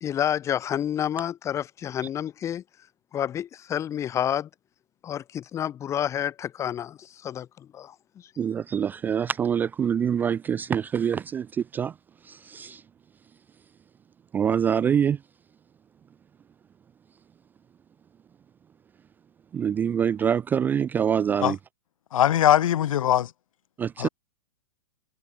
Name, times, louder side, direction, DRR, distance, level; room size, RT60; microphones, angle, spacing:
voice 1, 0.0-2.6 3.1-4.5 5.0-8.0, left 10 dB, 15° left, 1.7 m, -29 dB
voice 2, 8.4-11.5 11.7-11.9 12.3-12.8 14.3-15.2 19.5-21.6 23.8-24.1, right 8 dB, 10° right, 0.5 m, -25 dB
voice 3, 22.1-23.3 24.0-24.1, left 11 dB, 75° left, 1.7 m, -21 dB
hypercardioid pair, 160°, 17 cm